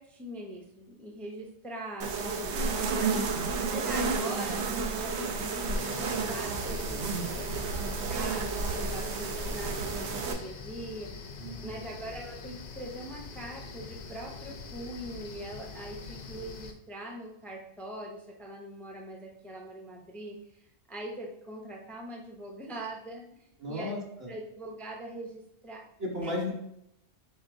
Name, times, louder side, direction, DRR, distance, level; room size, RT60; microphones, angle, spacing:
voice 1, 0.0-3.4 3.7-11.2 11.6-23.2 23.7-24.0 24.3-25.8 26.2-26.4, right 1 dB, ahead, -1 dB, 0.4 m, -42 dB
sound 1, 2.0-10.3, right 4 dB, 75° right, 0.9 m, -31 dB
sound 2, 5.7-16.7, left 4 dB, 60° left, 0.6 m, -44 dB
voice 2, 11.4-11.8 23.6-24.3 26.0-26.5, left 1 dB, 60° right, -2 dB, 1.3 m, -34 dB
4.3 x 4.2 x 2.6 m, 0.79 s
omnidirectional pair, 1.2 m